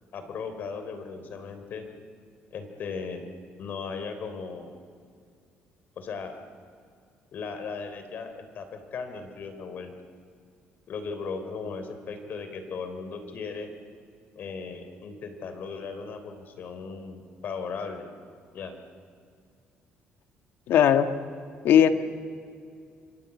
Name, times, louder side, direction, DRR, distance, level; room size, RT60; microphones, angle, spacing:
voice 1, 0.1-1.9 2.5-3.3 3.6-4.7 6.0-6.3 7.3-9.9 10.9-13.7 14.3-18.1 18.5-18.7, left 5 dB, 55° left, 8 dB, 3.4 m, -37 dB
voice 2, 20.7-21.1 21.6-21.9, left 9 dB, 75° left, 8 dB, 1.5 m, -17 dB
27.0 x 24.0 x 8.4 m, 2.3 s
cardioid pair, 145°, 4 cm